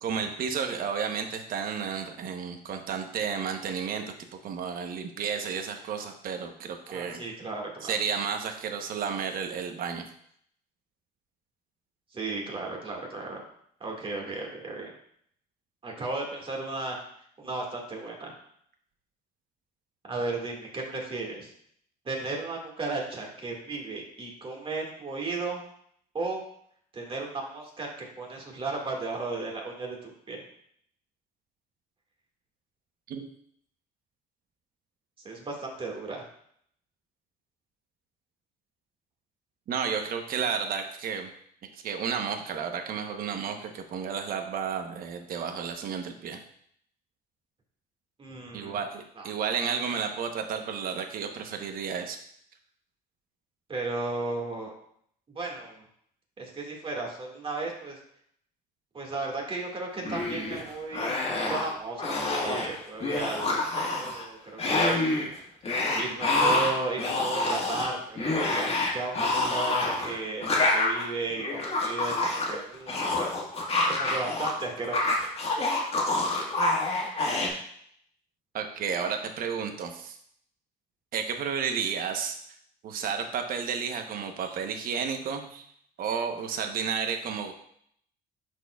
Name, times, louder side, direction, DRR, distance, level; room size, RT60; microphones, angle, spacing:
voice 1, 0.0-4.0 4.4-7.2 7.8-10.0 33.1-33.3 39.7-41.3 41.8-46.4 48.5-52.2 78.5-80.2 81.1-82.4 82.8-85.7 86.0-87.5, right 6 dB, 60° right, 5 dB, 0.9 m, -32 dB
voice 2, 6.9-8.0 12.1-13.4 13.8-14.9 15.8-17.0 17.4-18.4 20.1-21.5 22.1-25.6 26.1-26.4 26.9-30.4 35.2-36.3 48.2-48.8 49.2-49.3 53.7-54.7 55.3-55.8 56.4-58.0 58.9-61.2 61.5-63.5 63.8-65.3 65.7-73.1 73.9-75.2, right 3 dB, 30° right, 0 dB, 1.8 m, -35 dB
sound 1, 60.0-60.6 60.9-61.7 62.0-62.7 63.0-64.2 64.6-65.3 65.6-74.5 74.8-77.5, left 2 dB, 35° left, 1.6 m, -27 dB
10.5 x 4.4 x 2.3 m, 0.67 s
cardioid pair, 110°, 17 cm